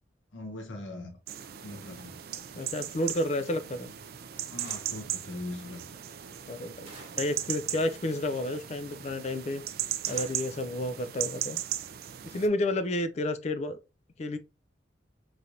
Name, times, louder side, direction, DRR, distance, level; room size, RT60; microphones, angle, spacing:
voice 1, 0.3-1.2 1.6-2.2 4.5-6.0, left 2 dB, 90° left, 0.9 m, -41 dB
sound 1, 1.3-12.5, right 11 dB, 55° right, 0.3 m, -37 dB
voice 2, 2.5-3.9 6.5-6.9 7.2-9.6 10.1-11.6 12.2-13.8 14.2-14.4, left 1 dB, 35° left, 0.3 m, -31 dB
sound 2, 4.6-5.1 6.8-7.4 10.0-10.6, right 2 dB, 35° right, 1.2 m, -49 dB
3.1 x 2.5 x 2.8 m
head